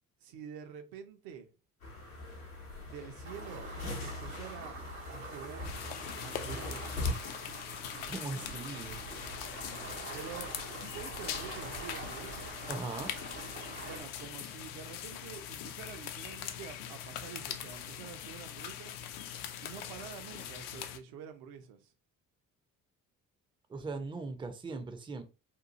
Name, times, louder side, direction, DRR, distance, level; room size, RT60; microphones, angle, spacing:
voice 1, 0.2-1.5 2.9-3.7 4.0-4.8 5.1-5.7 6.2-7.4 10.1-12.6 13.8-18.9 19.6-21.9, right 8 dB, 60° right, 0.6 m, -48 dB
sound 1, 1.8-7.1, left 3 dB, 90° left, 0.8 m, -41 dB
sound 2, 3.2-14.0, right 3 dB, 80° right, 1.0 m, -45 dB
sound 3, 5.6-21.0, left 10 dB, 65° left, 0.5 m, -42 dB
voice 2, 8.1-9.0 12.7-13.1 23.7-25.2, right 3 dB, 10° right, 0.4 m, -39 dB
2.7 x 2.3 x 2.6 m
figure-of-eight pair, 45°, 42 cm